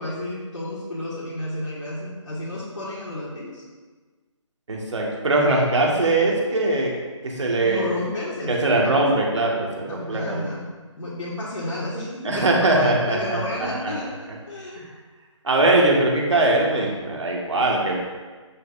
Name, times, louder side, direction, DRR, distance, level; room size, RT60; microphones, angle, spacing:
voice 1, 0.0-3.6 7.6-9.2 9.9-10.6 11.0-14.8, left 1 dB, 75° left, -7 dB, 2.1 m, -32 dB
voice 2, 4.7-6.9 7.2-8.0 8.5-10.5 12.2-13.7 14.8-14.9 15.4-18.1, right 2 dB, 65° right, -2 dB, 1.9 m, -21 dB
8.8 x 6.5 x 2.7 m, 1.4 s
figure-of-eight pair, 160°, 16 cm